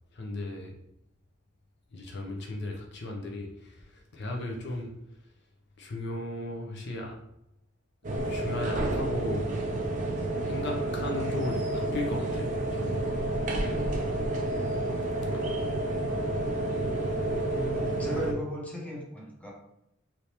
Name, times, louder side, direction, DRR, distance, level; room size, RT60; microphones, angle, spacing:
voice 1, 0.1-0.7 1.9-5.0 5.8-7.2 8.1-9.6 10.2-13.1 13.8-14.3 16.5-16.6, left 2 dB, 60° left, 0 dB, 0.6 m, -36 dB
sound 1, 8.0-18.3, right 2 dB, 40° right, 0.4 m, -30 dB
voice 2, 14.2-14.5 15.3-15.8 17.5-19.5, equal, 5° left, -3 dB, 0.7 m, -38 dB
3.3 x 2.7 x 2.8 m, 0.81 s
head